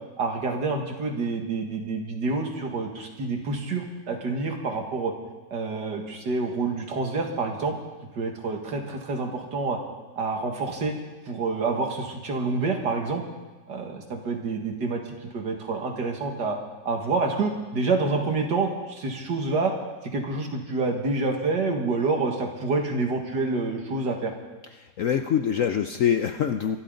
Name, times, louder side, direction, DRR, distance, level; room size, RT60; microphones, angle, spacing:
voice 1, 0.2-5.1 5.5-7.7 8.2-9.8 10.2-11.0 11.3-13.2 13.7-15.0 15.3-16.6 16.8-19.7 20.0-24.3, right 3 dB, 70° right, 2 dB, 2.5 m, -27 dB
voice 2, 24.7-26.8, left 8 dB, 65° left, 7 dB, 0.8 m, -24 dB
25.0 x 12.5 x 3.9 m, 1.2 s
omnidirectional pair, 2.0 m